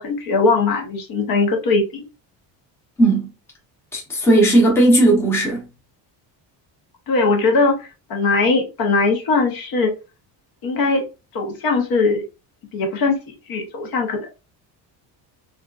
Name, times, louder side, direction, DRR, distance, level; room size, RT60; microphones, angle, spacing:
voice 1, 0.0-2.1 7.1-9.9 10.6-11.0 11.3-12.2 12.7-14.3, left 3 dB, 55° left, 0.8 m, -20 dB
voice 2, 3.0-3.3 3.9-5.7, right 1 dB, 5° left, 0.7 m, -15 dB
3.4 x 2.5 x 2.3 m
cardioid pair, 165°, 43 cm